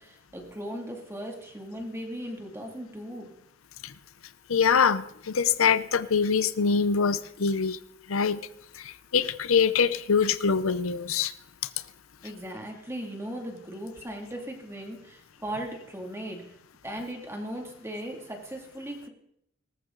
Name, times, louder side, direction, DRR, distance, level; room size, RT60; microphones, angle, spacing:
voice 1, 0.0-3.3 12.2-16.5 16.8-19.1, right 1 dB, 15° right, 2 dB, 2.6 m, -38 dB
voice 2, 4.5-7.8 8.1-8.4 8.8-11.3, left 6 dB, 80° left, 14 dB, 0.7 m, -24 dB
19.0 x 14.0 x 3.9 m, 0.77 s
head